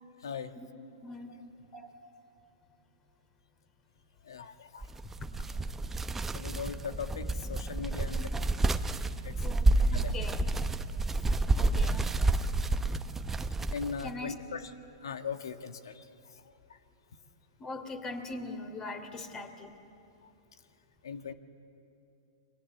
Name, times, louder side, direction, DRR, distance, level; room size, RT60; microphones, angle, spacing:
voice 1, 1.0-1.3 1.7-1.9 5.6-5.7 9.4-10.4 11.5-12.1 12.4-12.5 14.0-14.3 17.6-19.7, left 3 dB, 25° left, 7 dB, 3.0 m, -41 dB
voice 2, 4.3-4.9 6.3-8.3 9.2-9.3 9.7-10.2 11.5-11.7 12.5-12.9 13.3-13.4 13.7-14.7 15.0-16.0 21.0-21.3, left 6 dB, 80° left, 9 dB, 1.5 m, -40 dB
sound 1, 4.8-14.1, right 2 dB, 10° right, 0.9 m, -29 dB
29.0 x 24.0 x 8.2 m, 2.7 s
hypercardioid pair, 115°, 2 cm